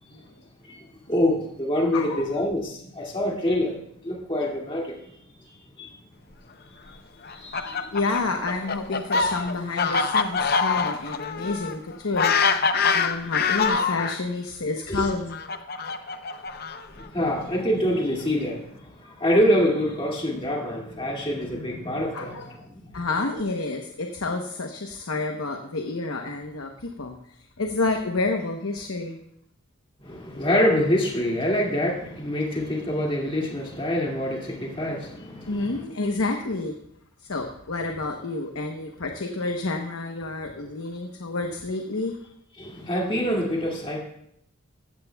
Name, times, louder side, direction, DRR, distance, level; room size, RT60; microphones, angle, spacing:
voice 1, 0.6-3.8 4.0-6.1 6.8-7.0 7.3-8.0 12.8-13.3 14.9-15.1 16.9-22.9 30.0-35.8 42.6-44.0, equal, 25° left, 2.2 m, -26 dB
voice 2, 1.9-2.2 7.9-12.5 12.9-15.4 22.1-22.4 22.9-29.2 35.5-36.8 37.3-42.2, left 3 dB, 70° left, 1.0 m, -29 dB
Fowl, 7.2-14.2 15.0-17.0, left 5 dB, 45° left, 0.6 m, -24 dB
15.0 x 14.5 x 2.3 m
head